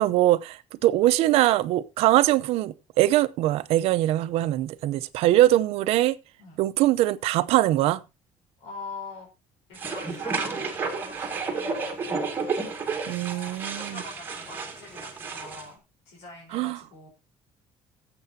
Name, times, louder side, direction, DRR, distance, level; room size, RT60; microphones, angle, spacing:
voice 1, 0.0-6.2 6.6-8.0 13.1-14.0 16.5-16.8, right 14 dB, 65° right, 0.7 m, -22 dB
voice 2, 8.6-9.3 9.7-12.4 13.1-17.1, left 3 dB, 75° left, 4.3 m, -43 dB
sound 1, 9.7-15.7, right 4 dB, 20° right, 2.2 m, -31 dB
18.0 x 7.8 x 2.8 m
cardioid pair, 165°, 11 cm